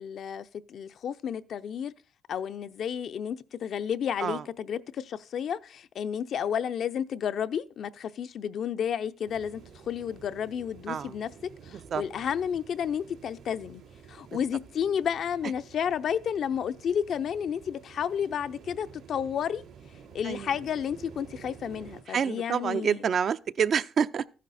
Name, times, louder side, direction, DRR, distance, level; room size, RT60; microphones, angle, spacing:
voice 1, 0.0-1.9 2.3-9.6 9.9-11.3 11.7-13.8 14.1-19.6 20.1-23.0, left 8 dB, 65° left, 0.6 m, -31 dB
sound 1, 9.3-22.0, right 7 dB, 75° right, 4.1 m, -50 dB
voice 2, 22.1-24.3, right 7 dB, 55° right, 0.6 m, -27 dB
14.0 x 10.5 x 4.2 m
cardioid pair, 90°, 0 cm